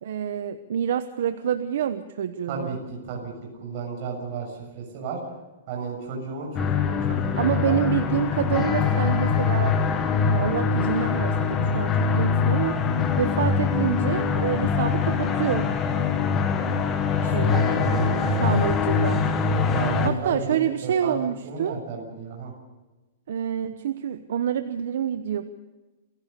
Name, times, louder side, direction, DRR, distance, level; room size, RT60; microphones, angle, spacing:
voice 1, 0.0-2.8 7.3-9.8 10.2-12.8 13.2-15.7 17.2-17.8 18.4-19.3 20.0-21.8 23.3-25.4, right 9 dB, 55° right, 10 dB, 1.0 m, -27 dB
voice 2, 2.5-3.3 3.6-5.2 5.7-7.8 17.2-18.5 19.7-21.2 21.4-22.5, right 4 dB, 35° right, 1 dB, 6.8 m, -33 dB
sound 1, 6.6-20.1, left 5 dB, 15° left, 1.4 m, -23 dB
27.5 x 16.0 x 6.9 m, 1.2 s
hypercardioid pair, 180°, 0 cm